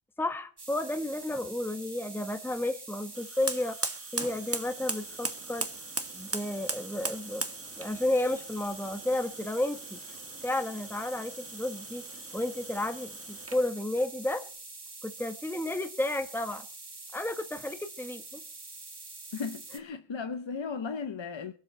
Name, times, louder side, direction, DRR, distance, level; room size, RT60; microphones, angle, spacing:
voice 1, 0.2-5.7 6.1-7.4 7.8-10.0 10.4-12.0 12.3-14.4 15.0-16.6 17.1-18.4, left 1 dB, 5° left, 1.1 m, -32 dB
sound 1, 0.6-19.8, right 3 dB, 60° right, 2.4 m, -46 dB
Fire, 3.1-13.7, right 3 dB, 30° right, 1.4 m, -39 dB
voice 2, 19.3-21.5, left 5 dB, 70° left, 0.9 m, -36 dB
22.0 x 7.7 x 6.5 m
wide cardioid pair, 55°, 46 cm